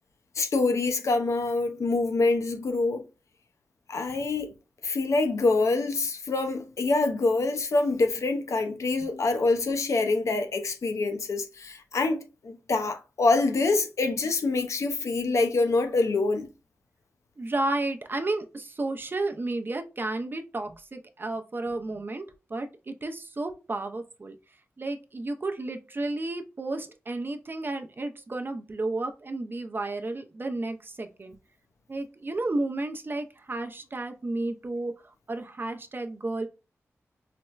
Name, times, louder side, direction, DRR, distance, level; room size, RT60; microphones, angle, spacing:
voice 1, 0.4-3.0 3.9-4.5 4.8-16.5, left 3 dB, 70° left, 0.5 m, -25 dB
voice 2, 17.4-24.4 24.8-31.4 31.9-34.9 35.3-36.5, right 2 dB, 40° right, 0.5 m, -32 dB
4.2 x 2.1 x 2.3 m
cardioid pair, 55°, 5 cm